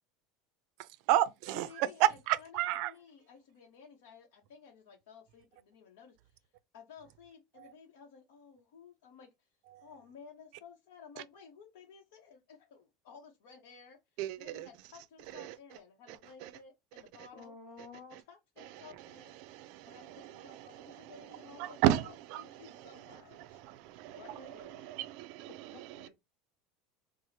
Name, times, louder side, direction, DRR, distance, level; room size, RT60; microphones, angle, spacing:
voice 1, 0.8-2.9 7.6-7.7 9.7-9.9 14.2-14.7 15.3-15.6 16.1-16.5 18.1-18.2 18.6-26.1, right 13 dB, 55° right, 0.4 m, -34 dB
voice 2, 1.6-17.5 18.3-19.4 19.8-23.6 24.1-24.9, left 6 dB, 80° left, 0.8 m, -55 dB
voice 3, 17.3-18.2 25.7-26.1, left 4 dB, 35° left, 1.3 m, -51 dB
4.7 x 2.0 x 2.7 m
cardioid pair, 160°, 0 cm